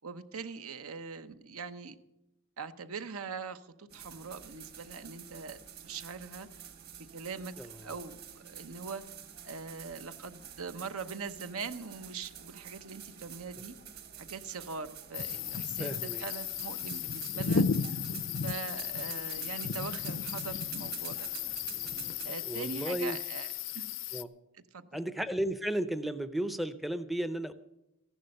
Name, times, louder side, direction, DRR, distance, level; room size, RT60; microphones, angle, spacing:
voice 1, 0.0-2.0 2.6-6.7 7.1-7.5 7.8-9.0 9.4-13.8 14.2-17.7 18.4-21.3 22.2-23.5 23.7-24.0 24.5-25.0, right 5 dB, 80° right, 11 dB, 0.9 m, -42 dB
sound 1, 3.9-22.3, right 9 dB, 45° right, 1.5 m, -48 dB
voice 2, 7.6-7.9 15.8-16.2 22.5-23.2 24.1-24.3 24.9-27.5, right 1 dB, ahead, 11 dB, 0.5 m, -34 dB
sound 2, 15.1-24.2, left 6 dB, 60° left, 0.5 m, -34 dB
15.0 x 11.5 x 6.5 m, 0.92 s
head